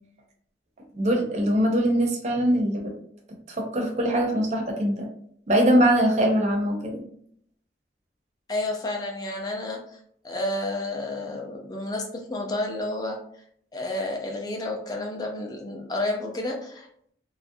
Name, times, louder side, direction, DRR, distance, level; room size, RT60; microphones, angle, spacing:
voice 1, 0.9-2.9 3.5-5.1 5.5-7.0, equal, 40° right, 1 dB, 0.5 m, -22 dB
voice 2, 8.5-9.8 10.2-13.2 13.7-16.9, left 2 dB, 20° left, 1 dB, 0.4 m, -30 dB
2.4 x 2.0 x 2.6 m, 0.67 s
head